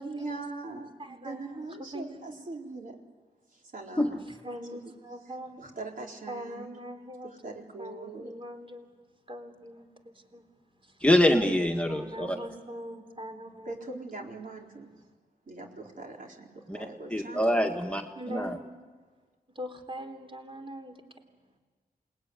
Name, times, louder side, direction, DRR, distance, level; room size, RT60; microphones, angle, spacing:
voice 1, 0.0-3.0 3.5-4.3 4.7-4.9 5.6-6.8 7.2-8.3 13.7-14.9 15.5-17.4, right 3 dB, 55° right, 0 dB, 4.3 m, -41 dB
voice 2, 1.0-2.4 4.4-5.6 6.3-8.9 9.3-10.4 10.8-11.1 11.9-14.0 18.1-18.6 19.5-21.0, equal, 35° right, 4 dB, 3.7 m, -42 dB
voice 3, 11.0-12.4 16.7-16.8 17.1-18.0 18.3-18.6, left 1 dB, 5° left, 2 dB, 1.8 m, -24 dB
28.0 x 20.5 x 9.7 m, 1.4 s
wide cardioid pair, 80°, 16 cm